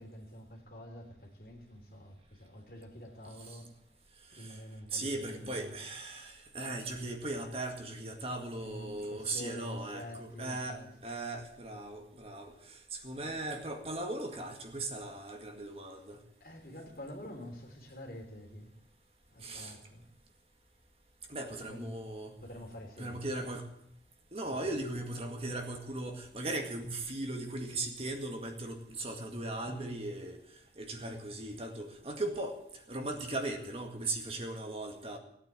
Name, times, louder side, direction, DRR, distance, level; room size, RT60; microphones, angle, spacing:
voice 1, 0.0-3.8 4.3-5.8 8.6-11.0 13.2-13.4 16.4-18.8 19.3-20.1 21.4-22.0 22.4-23.4 24.4-24.7 29.6-30.0, equal, 55° left, 3.1 m, -47 dB
voice 2, 4.9-12.5 12.9-16.2 19.4-19.7 21.3-22.4 23.0-23.7 24.3-30.4 30.8-32.6 32.9-35.2, right 2 dB, 35° right, 2.0 m, -38 dB
17.5 x 9.0 x 9.0 m
head